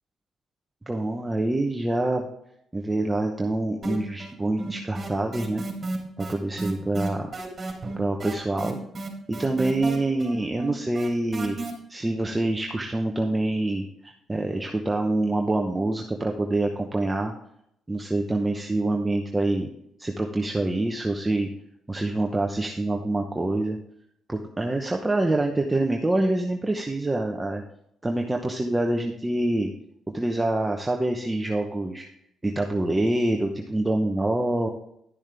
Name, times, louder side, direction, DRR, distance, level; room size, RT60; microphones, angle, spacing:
voice 1, 0.9-2.3 2.7-5.6 6.2-7.3 8.0-8.8 9.3-11.6 11.9-17.3 17.9-19.7 20.0-21.5 21.9-23.8 24.3-27.6 28.0-29.7 30.1-32.0 32.4-34.7, right 2 dB, 15° right, 2 dB, 1.0 m, -26 dB
sound 1, 3.8-4.3 4.6-11.7, right 2 dB, 35° right, 3.2 m, -32 dB
12.0 x 7.2 x 3.5 m, 0.74 s
cardioid pair, 90°, 0 cm